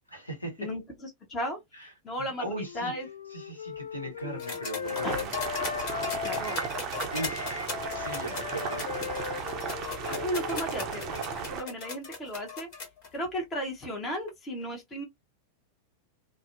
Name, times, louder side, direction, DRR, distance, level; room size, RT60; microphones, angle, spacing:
voice 1, 0.1-0.7 1.7-1.9 2.2-2.9 3.3-5.3 7.1-8.9, right 1 dB, 85° left, 1.0 m, -39 dB
voice 2, 0.6-1.6 2.0-3.1 4.2-4.4 4.7-5.2 6.1-6.6 10.1-12.7 13.1-15.0, equal, 25° left, 0.8 m, -35 dB
Wind instrument woodwind instrument, 2.4-6.8 7.1-11.6, left 8 dB, 65° left, 0.4 m, -38 dB
sound 1, 4.4-13.1 14.3-14.4, left 4 dB, 45° left, 1.3 m, -38 dB
Boiling, 4.8-11.6, right 6 dB, 35° right, 0.5 m, -35 dB
2.5 x 2.1 x 2.4 m
figure-of-eight pair, 90°, 0 cm